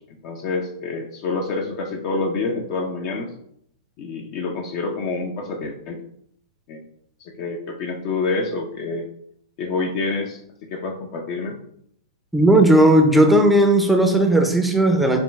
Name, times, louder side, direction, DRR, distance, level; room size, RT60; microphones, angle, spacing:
voice 1, 0.2-3.3 4.0-6.0 6.7-6.8 7.2-9.0 9.6-10.4 10.7-11.6, left 3 dB, 45° left, 1 dB, 0.6 m, -27 dB
voice 2, 12.3-15.2, right 1 dB, 5° right, 3 dB, 0.5 m, -15 dB
5.5 x 2.2 x 3.2 m, 0.72 s
hypercardioid pair, 110°, 2 cm